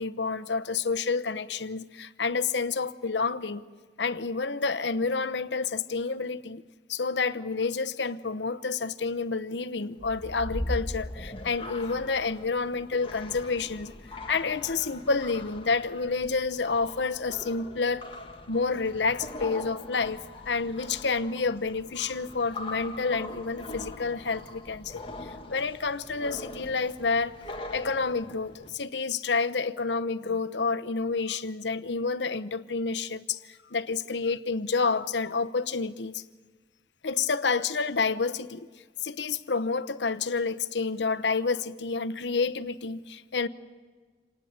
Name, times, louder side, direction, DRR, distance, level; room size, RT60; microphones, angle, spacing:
voice 1, 0.0-3.6 4.0-6.6 6.9-13.9 14.3-18.0 18.5-27.4 27.7-33.4 33.7-36.2 37.0-38.7 39.0-43.5, left 4 dB, 85° left, 0.9 m, -29 dB
sound 1, 10.0-28.7, left 1 dB, 30° left, 1.9 m, -41 dB
27.0 x 19.0 x 8.2 m
head